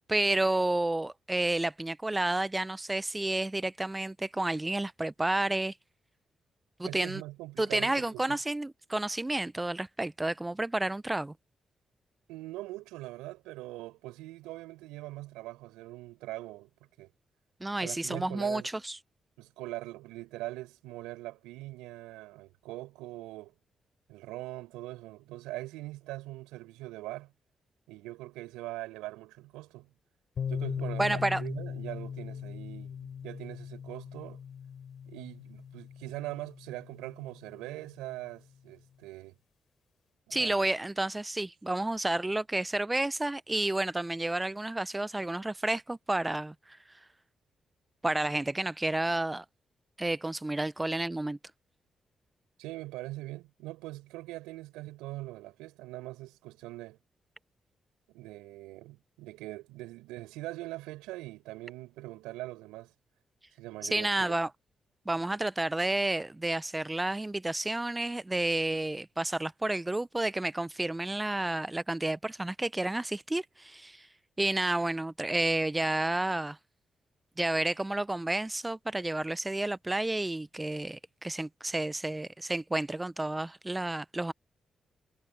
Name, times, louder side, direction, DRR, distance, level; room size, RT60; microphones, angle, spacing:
voice 1, 0.1-5.7 6.8-7.2 7.6-11.3 17.6-19.0 31.0-31.4 40.3-46.8 48.0-49.4 50.0-51.4 63.9-64.5 65.1-74.1 74.4-76.6 77.4-84.3, right 2 dB, 20° right, 0.7 m, -30 dB
voice 2, 6.8-8.4 12.3-16.7 17.0-17.1 17.8-18.7 19.4-23.5 24.1-27.3 27.9-29.9 30.5-34.4 35.1-39.3 40.3-40.8 52.6-57.0 58.1-62.9 63.6-64.3, right 18 dB, 90° right, 5.5 m, -42 dB
sound 1, 30.4-38.0, left 7 dB, 65° left, 5.2 m, -39 dB
hypercardioid pair, 45°, 0 cm